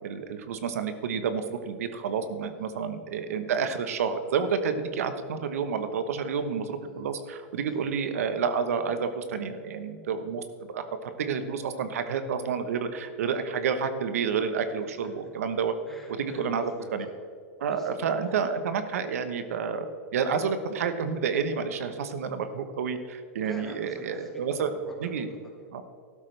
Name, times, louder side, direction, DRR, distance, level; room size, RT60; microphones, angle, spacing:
voice 1, 0.0-10.4 10.7-15.7 16.2-17.1 17.6-19.9 20.1-24.7 25.0-25.3 25.7-25.8, right 6 dB, 85° right, 9 dB, 1.1 m, -29 dB
voice 2, 15.9-17.1 17.7-18.4 23.4-25.7, left 1 dB, 5° left, -2 dB, 2.0 m, -46 dB
14.0 x 12.5 x 3.3 m, 2.2 s
supercardioid pair, 165°, 8 cm